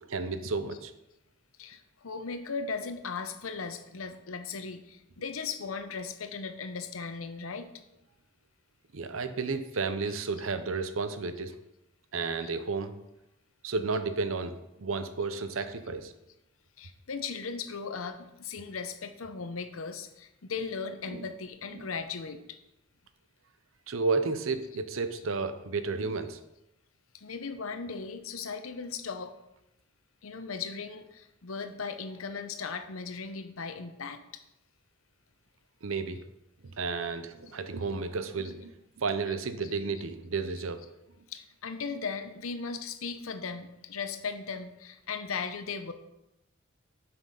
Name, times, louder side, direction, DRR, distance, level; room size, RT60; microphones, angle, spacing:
voice 1, 0.1-0.9 8.9-11.5 12.1-12.9 13.6-16.1 21.1-21.3 23.9-26.4 35.8-36.2 36.6-38.7 39.0-40.9, right 4 dB, 75° right, 10 dB, 0.7 m, -32 dB
voice 2, 1.6-7.7 10.0-10.5 12.4-12.5 15.6-15.7 16.8-22.4 25.1-25.2 27.1-29.4 30.2-34.2 37.0-37.2 38.4-38.5 39.3-39.7 40.6-40.9 41.3-45.9, left 5 dB, 85° left, 9 dB, 0.8 m, -38 dB
7.5 x 5.9 x 5.5 m, 0.89 s
head